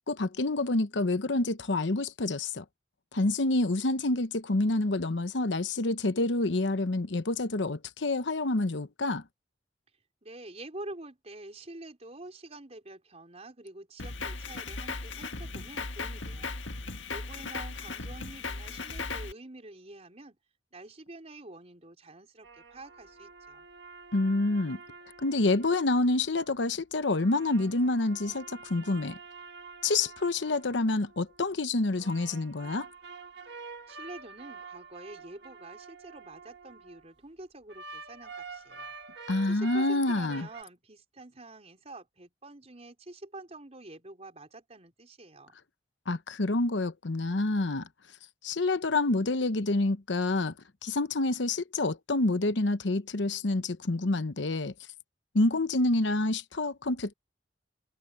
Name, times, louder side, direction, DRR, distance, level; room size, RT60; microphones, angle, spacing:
voice 1, 0.1-2.6 3.1-9.2 24.1-24.8 25.2-29.2 29.8-32.9 39.3-40.5 46.1-47.9 48.4-50.5 50.8-54.7 55.3-57.1, left 2 dB, 70° left, 0.9 m, -28 dB
voice 2, 10.2-16.5 17.1-20.4 20.7-23.7 33.9-38.9 39.2-45.5, right 2 dB, 35° right, 4.4 m, -47 dB
Drum kit, 14.0-19.3, left 4 dB, 90° left, 1.8 m, -37 dB
sound 1, 22.4-26.5 27.0-31.5 32.0-37.1 37.7-40.6, right 4 dB, 60° right, 1.5 m, -47 dB
head